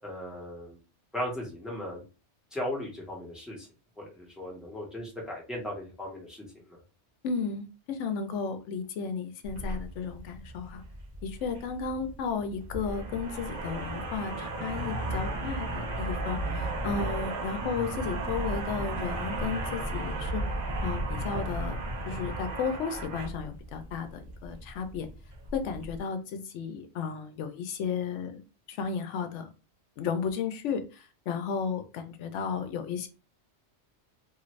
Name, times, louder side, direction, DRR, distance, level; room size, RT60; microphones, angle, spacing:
voice 1, 0.0-0.8 1.1-2.0 2.5-3.7 4.0-6.8, left 1 dB, ahead, -2 dB, 1.0 m, -37 dB
voice 2, 7.2-10.8 11.2-20.4 20.8-21.8 22.1-25.1 25.5-28.4 28.7-29.5 30.0-33.1, left 6 dB, 85° left, 8 dB, 0.9 m, -34 dB
sound 1, 9.4-26.0, right 1 dB, 45° right, 0.7 m, -35 dB
2.7 x 2.5 x 3.1 m, 0.32 s
omnidirectional pair, 1.2 m